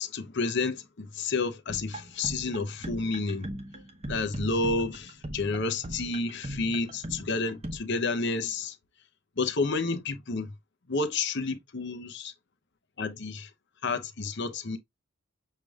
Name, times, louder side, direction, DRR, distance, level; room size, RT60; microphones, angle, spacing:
voice 1, 0.0-3.5 4.1-8.8 9.4-10.5 10.9-12.3 13.0-13.5 13.8-14.8, left 3 dB, 50° left, 0.7 m, -30 dB
sound 1, 1.7-7.8, right 1 dB, 30° right, 0.9 m, -39 dB
6.6 x 3.3 x 2.3 m
head